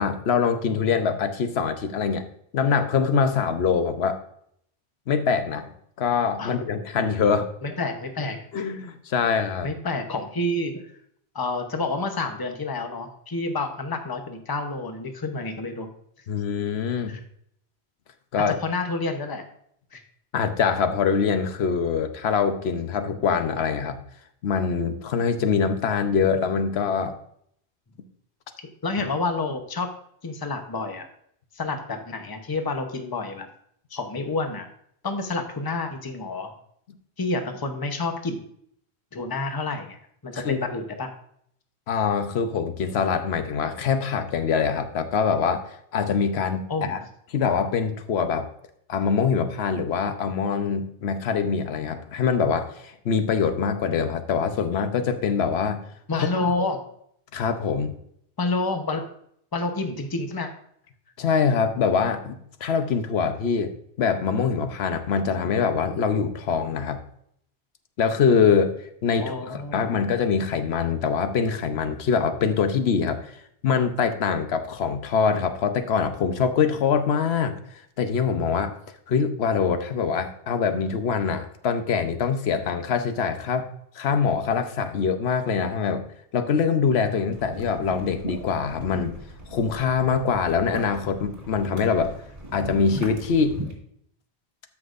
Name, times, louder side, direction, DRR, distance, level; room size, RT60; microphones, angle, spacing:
voice 1, 0.0-2.2 2.5-4.2 5.1-5.7 6.0-7.5 8.5-9.7 16.3-17.2 18.3-18.6 20.3-24.0 24.4-27.1 40.3-40.6 41.9-47.0 47.3-48.5 48.9-55.8 57.3-57.9 61.2-63.7 64.0-67.0 68.0-68.7 69.0-73.2 73.6-77.6 78.0-78.7 79.1-83.7 83.9-86.0 86.3-89.2 89.5-92.1 92.5-93.6, left 6 dB, 70° left, 8 dB, 1.1 m, -24 dB
voice 2, 7.6-8.6 9.6-10.8 11.3-15.9 17.1-17.2 18.6-19.4 19.9-20.0 28.8-29.9 30.2-31.1 31.5-33.5 33.9-34.7 35.0-36.5 37.2-38.4 39.1-41.1 46.7-47.0 56.1-56.8 58.4-59.1 59.5-60.5 69.2-70.0, left 3 dB, 20° left, 5 dB, 0.8 m, -29 dB
sound 1, 87.3-93.7, right 1 dB, 45° right, 2.3 m, -38 dB
13.0 x 5.9 x 2.5 m, 0.68 s
omnidirectional pair, 1.1 m